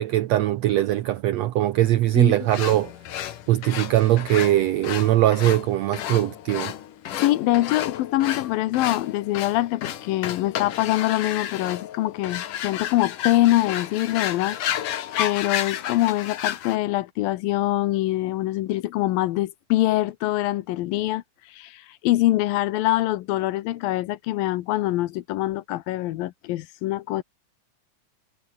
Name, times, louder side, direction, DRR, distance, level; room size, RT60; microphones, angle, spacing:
voice 1, 0.0-2.9 3.5-6.7, right 14 dB, 80° right, 1.5 m, -21 dB
sound 1, 2.5-16.8, left 11 dB, 70° left, 3.1 m, -32 dB
voice 2, 7.2-14.6 15.2-27.2, left 16 dB, 85° left, 2.7 m, -24 dB
omnidirectional pair, 4.0 m